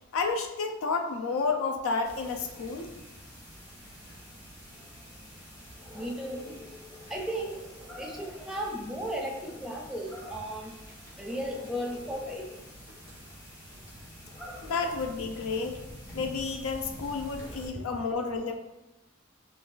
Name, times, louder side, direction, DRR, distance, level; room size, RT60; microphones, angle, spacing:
voice 1, 0.1-2.9 14.6-15.8 16.1-18.5, left 4 dB, 90° left, 5 dB, 0.4 m, -31 dB
sound 1, 2.0-17.7, equal, 20° left, 0.7 m, -46 dB
voice 2, 5.9-6.5 7.0-7.6 8.0-10.8 11.2-12.5 13.3-13.4, equal, 5° right, 0 dB, 0.3 m, -35 dB
2.4 x 2.3 x 3.7 m, 0.96 s
head